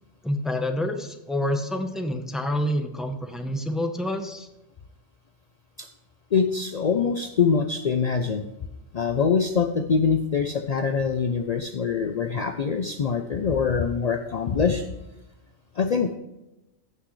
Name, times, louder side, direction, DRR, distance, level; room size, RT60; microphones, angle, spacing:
voice 1, 0.2-4.5, left 1 dB, ahead, 5 dB, 0.6 m, -28 dB
voice 2, 6.3-8.5 8.9-14.9 15.8-16.1, left 5 dB, 60° left, 7 dB, 0.4 m, -24 dB
14.5 x 6.1 x 3.2 m, 0.97 s
omnidirectional pair, 1.4 m